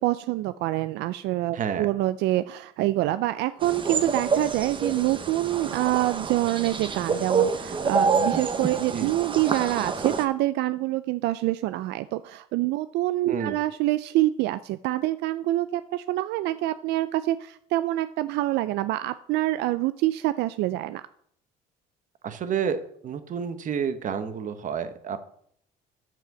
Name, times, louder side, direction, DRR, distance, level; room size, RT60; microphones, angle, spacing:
voice 1, 0.0-21.0, right 16 dB, 85° right, 13 dB, 0.4 m, -26 dB
voice 2, 1.5-1.9 8.9-9.1 13.3-13.6 22.2-25.2, right 7 dB, 50° right, 10 dB, 1.1 m, -30 dB
sound 1, 3.6-10.2, right 5 dB, 30° right, 1.0 m, -27 dB
7.7 x 5.9 x 6.9 m, 0.66 s
cardioid pair, 110°, 17 cm